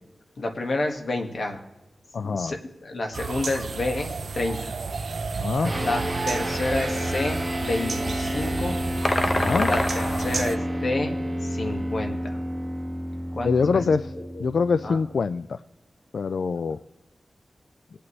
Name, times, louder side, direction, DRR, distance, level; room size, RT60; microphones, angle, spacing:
voice 1, 0.4-1.6 2.2-4.8 5.7-8.8 9.7-11.1 11.5-12.4 13.3-13.8 14.2-14.4 14.8-15.0, left 2 dB, 60° left, 3 dB, 1.8 m, -29 dB
voice 2, 2.1-2.6 5.3-5.7 9.4-9.7 13.4-14.1 14.4-15.6 16.1-16.8, left 5 dB, 80° left, 14 dB, 0.3 m, -24 dB
sound 1, 3.1-10.6, right 4 dB, 70° right, 0.5 m, -32 dB
sound 2, 5.6-15.3, equal, 5° right, 1.9 m, -30 dB
sound 3, 9.0-10.8, left 1 dB, 30° left, 1.0 m, -26 dB
21.0 x 8.4 x 3.2 m, 1.0 s
wide cardioid pair, 125°, 0 cm